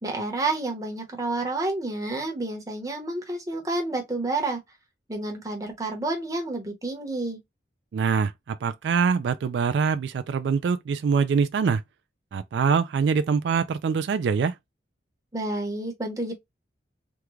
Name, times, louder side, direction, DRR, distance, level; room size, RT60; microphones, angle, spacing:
voice 1, 0.0-4.6 5.1-7.4 15.3-16.3, right 2 dB, 20° right, 0.9 m, -29 dB
voice 2, 7.9-11.8 12.3-14.5, right 6 dB, 80° right, 0.3 m, -24 dB
3.6 x 2.2 x 3.0 m
head